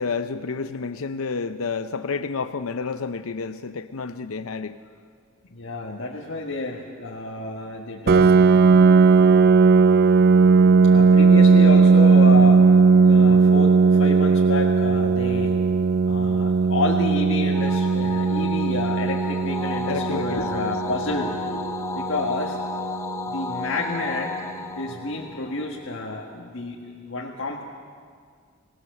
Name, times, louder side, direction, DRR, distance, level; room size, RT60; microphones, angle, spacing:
voice 1, 0.0-4.8 19.9-20.8, left 4 dB, 85° left, 10 dB, 0.6 m, -30 dB
voice 2, 5.5-8.3 10.9-12.6 13.0-15.5 16.0-22.6 23.2-24.3 24.8-27.6, left 2 dB, 65° left, -2 dB, 1.7 m, -30 dB
Piano, 8.1-23.5, right 4 dB, 50° right, 0.4 m, -17 dB
sound 1, 17.5-26.1, left 4 dB, 15° left, 1.0 m, -33 dB
25.0 x 18.0 x 6.8 m, 2.1 s
head